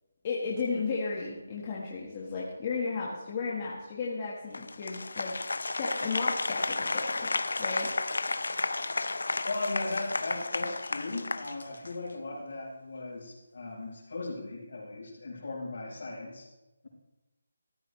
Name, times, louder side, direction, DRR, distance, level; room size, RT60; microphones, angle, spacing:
voice 1, 0.2-5.4 5.8-7.3 7.6-7.9, left 4 dB, 25° left, -4 dB, 1.4 m, -34 dB
Applause, 4.5-12.1, left 3 dB, 80° left, 0.7 m, -32 dB
voice 2, 9.4-16.5, left 2 dB, 60° left, -2 dB, 4.7 m, -37 dB
14.0 x 12.5 x 3.2 m, 1.0 s
hypercardioid pair, 175°, 0 cm